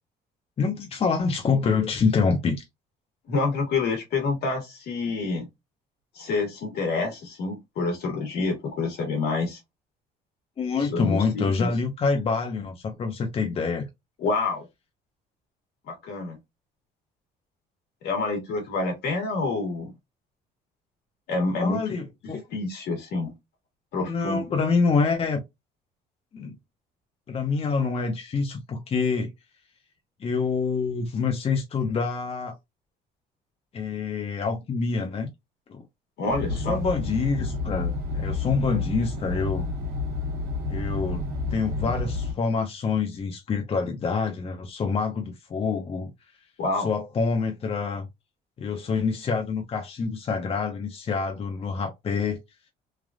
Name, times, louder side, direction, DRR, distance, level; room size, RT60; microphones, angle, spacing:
voice 1, 0.6-2.6 10.6-13.9 21.6-22.4 24.0-25.4 26.3-26.6 27.3-29.3 30.2-32.6 33.7-35.3 35.7-35.8 36.5-39.7 40.7-41.2 41.5-46.1 46.8-48.1 48.6-52.4, left 4 dB, 35° left, 0.7 m, -26 dB
voice 2, 3.3-5.5 6.1-9.6 10.8-11.7 14.2-14.7 15.9-16.4 18.0-19.9 21.3-22.0 22.5-23.3 23.9-24.6 36.2-36.8 46.6-46.9, left 3 dB, 70° left, 1.5 m, -28 dB
sound 1, 36.3-42.3, left 3 dB, 65° right, 1.0 m, -30 dB
3.3 x 2.4 x 2.4 m
cardioid pair, 110°, 17 cm